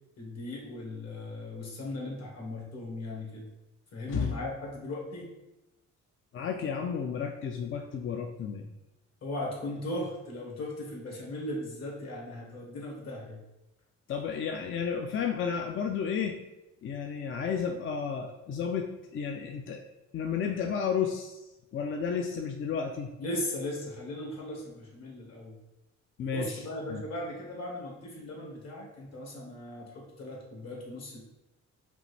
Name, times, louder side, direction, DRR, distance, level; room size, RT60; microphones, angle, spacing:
voice 1, 0.2-3.5 3.9-5.3 9.2-13.4 23.2-25.5 26.3-31.2, left 1 dB, 60° left, -1 dB, 1.5 m, -38 dB
voice 2, 6.3-8.7 14.1-16.4 16.8-19.8 20.1-23.1 26.2-26.6 26.9-27.0, left 6 dB, 45° left, 3 dB, 0.4 m, -32 dB
5.2 x 2.6 x 3.2 m, 0.97 s
cardioid pair, 90°, 30 cm